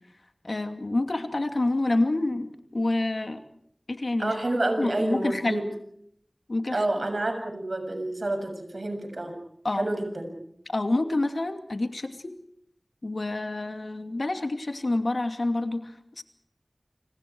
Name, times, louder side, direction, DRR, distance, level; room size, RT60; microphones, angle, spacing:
voice 1, 0.4-3.4 3.9-4.3 4.8-5.6 6.5-6.8 9.6-9.8 10.7-12.3 13.0-15.9 16.2-16.3, left 2 dB, 80° left, 7 dB, 2.6 m, -27 dB
voice 2, 4.2-5.7 6.7-9.4 9.7-10.3, right 2 dB, 80° right, 6 dB, 7.0 m, -28 dB
29.0 x 27.5 x 4.8 m, 0.69 s
wide cardioid pair, 40°, 0 cm